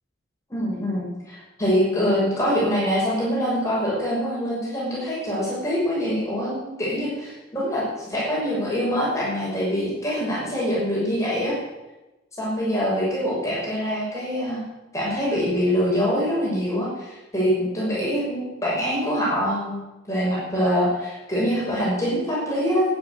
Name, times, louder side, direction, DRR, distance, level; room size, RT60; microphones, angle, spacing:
voice 1, 0.5-11.5 12.4-14.6 14.9-19.8 20.1-22.9, equal, 15° left, -6 dB, 6.3 m, -24 dB
12.5 x 9.8 x 9.6 m, 1.0 s
head